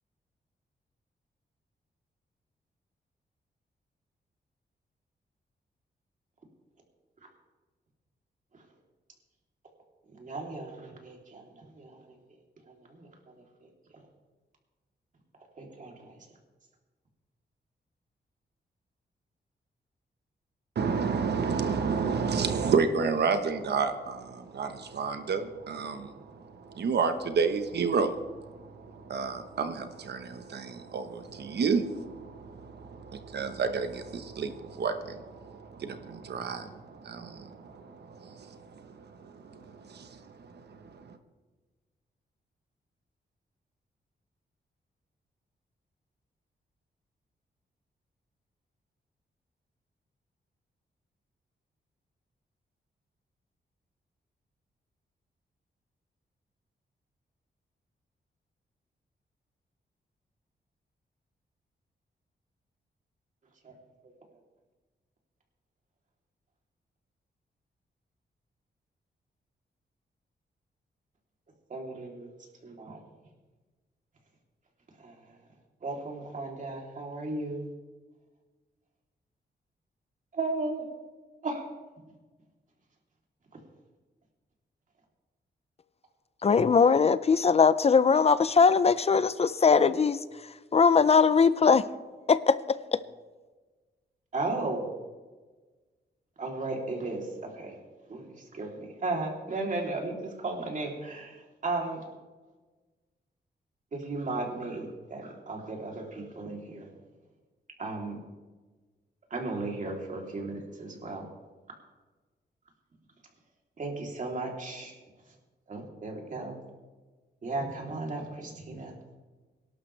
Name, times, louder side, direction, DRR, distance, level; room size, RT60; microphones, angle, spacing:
voice 1, 10.1-12.1 12.7-13.1 15.6-16.3 63.6-63.7 71.7-72.3 72.6-73.0 75.0-75.2 75.8-77.6 80.3-80.8 81.4-81.6 94.3-94.9 96.4-97.8 98.1-102.0 103.9-106.9 107.8-108.2 109.3-111.3 113.8-115.0 115.7-116.6 117.4-119.0, right 2 dB, 45° right, 3.3 m, -35 dB
voice 2, 20.7-41.2, right 5 dB, 70° right, 1.2 m, -31 dB
voice 3, 86.4-91.9 92.3-93.0, left 5 dB, 35° left, 0.5 m, -21 dB
24.0 x 12.0 x 3.4 m
wide cardioid pair, 130°, 18 cm